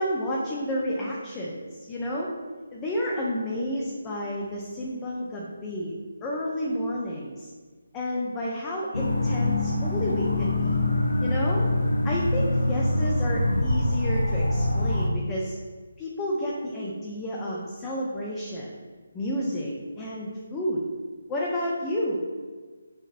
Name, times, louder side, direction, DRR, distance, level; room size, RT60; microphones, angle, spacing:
voice 1, 0.0-2.3 2.7-5.9 6.2-7.5 7.9-10.8 11.2-11.7 12.0-15.6 16.0-18.7 19.1-20.8 21.3-22.2, equal, 15° left, -4 dB, 0.6 m, -30 dB
sound 1, 8.9-15.1, left 1 dB, 80° left, 0.6 m, -24 dB
6.4 x 2.9 x 2.6 m, 1.4 s
figure-of-eight pair, 155°, 0 cm